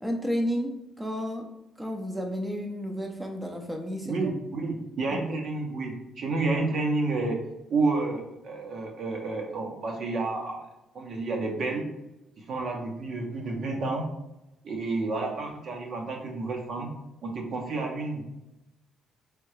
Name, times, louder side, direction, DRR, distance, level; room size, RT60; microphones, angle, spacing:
voice 1, 0.0-0.7 1.0-1.4 1.8-4.3 5.1-5.4, equal, 5° right, 1 dB, 0.6 m, -32 dB
voice 2, 4.0-7.4 7.7-10.7 10.9-11.9 12.4-14.1 14.6-16.9 17.2-18.3, right 3 dB, 60° right, 1 dB, 0.8 m, -30 dB
3.6 x 3.4 x 3.2 m, 0.91 s
cardioid pair, 90°, 0 cm